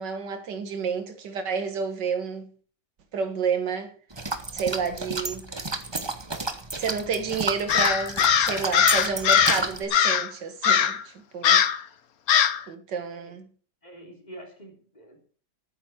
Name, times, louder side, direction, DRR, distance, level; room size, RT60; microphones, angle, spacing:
voice 1, 0.0-2.5 3.1-3.9 4.5-5.5 6.8-11.6 12.7-13.4, right 5 dB, 80° right, 2.1 m, -30 dB
sound 1, 4.1-9.9, right 2 dB, 20° right, 1.0 m, -32 dB
Crow, 7.7-9.6 9.9-10.3 10.6-11.0 11.4-11.8 12.3-12.6, left 8 dB, 60° left, 1.3 m, -20 dB
voice 2, 13.8-15.4, right 1 dB, 25° left, 3.4 m, -46 dB
11.0 x 9.2 x 6.3 m
omnidirectional pair, 1.8 m